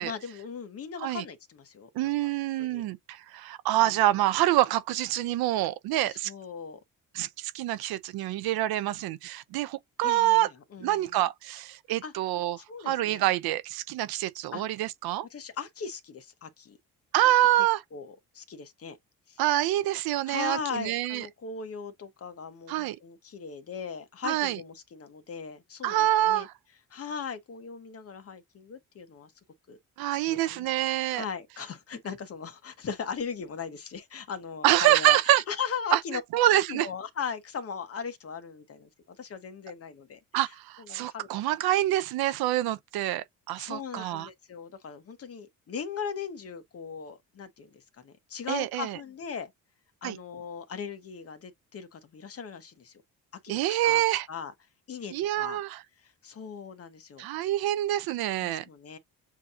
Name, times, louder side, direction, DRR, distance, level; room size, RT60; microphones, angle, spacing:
voice 1, 0.0-2.3 2.6-2.9 3.8-4.1 6.0-6.8 10.0-11.2 12.0-12.1 12.6-13.2 14.5-14.6 15.3-16.8 17.9-19.0 19.3-19.4 20.3-26.5 26.9-29.3 29.7-29.8 30.1-30.7 31.1-35.2 35.5-36.2 36.7-40.5 40.8-41.3 43.6-49.5 50.0-53.0 53.4-54.0 54.3-54.5 54.9-55.6 56.0-57.3 58.4-59.0, left 6 dB, 40° left, 1.1 m, -39 dB
voice 2, 2.0-6.3 7.1-10.5 10.8-12.6 12.8-15.3 17.1-17.8 19.4-21.2 22.7-23.0 24.2-24.6 25.8-26.5 30.0-31.2 34.6-35.4 35.9-36.0 36.3-36.9 40.3-44.3 48.5-49.0 50.0-50.2 53.5-54.3 55.1-55.8 57.2-58.6, right 14 dB, 90° right, 0.7 m, -26 dB
7.2 x 2.8 x 2.5 m
cardioid pair, 125°, 36 cm